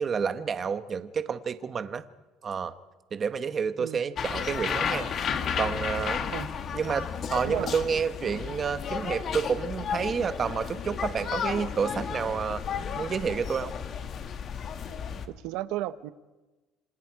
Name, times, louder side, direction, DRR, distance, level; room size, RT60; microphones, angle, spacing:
voice 1, 0.0-2.0 2.4-2.7 3.1-5.1 5.6-6.2 6.7-12.6 13.0-13.7, right 6 dB, 30° right, 10 dB, 1.2 m, -29 dB
sound 1, 4.2-15.3, left 7 dB, 40° left, 1.7 m, -33 dB
voice 2, 7.4-7.8 15.3-16.1, right 15 dB, 80° right, 13 dB, 0.9 m, -34 dB
27.5 x 27.0 x 4.8 m, 1.2 s
cardioid pair, 150°, 0 cm